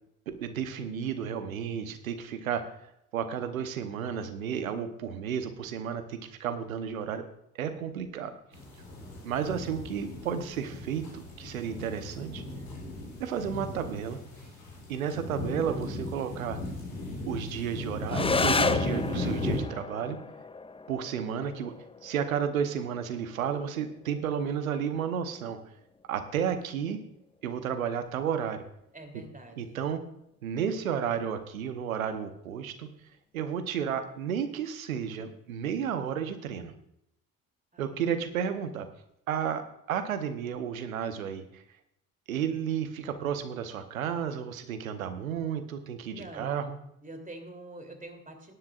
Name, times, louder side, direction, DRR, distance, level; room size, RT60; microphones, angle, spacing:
voice 1, 0.3-2.7 3.1-7.2 7.5-8.4 9.2-12.4 13.2-14.2 14.9-16.6 17.3-20.2 20.9-21.7 22.0-25.6 26.1-27.0 27.4-28.6 29.1-29.2 29.6-30.0 30.4-32.9 33.3-36.7 37.8-38.9 39.3-41.6 42.3-46.8, right 8 dB, 85° right, 10 dB, 1.0 m, -32 dB
sound 1, 8.5-19.6, left 2 dB, 85° left, 3.0 m, -36 dB
sound 2, 18.1-27.1, left 4 dB, 15° left, 0.6 m, -34 dB
voice 2, 28.9-29.6 37.7-38.0 46.1-46.6 47.0-48.5, right 1 dB, 20° right, 5 dB, 3.0 m, -45 dB
17.5 x 10.5 x 2.4 m, 0.76 s
hypercardioid pair, 50°, 40 cm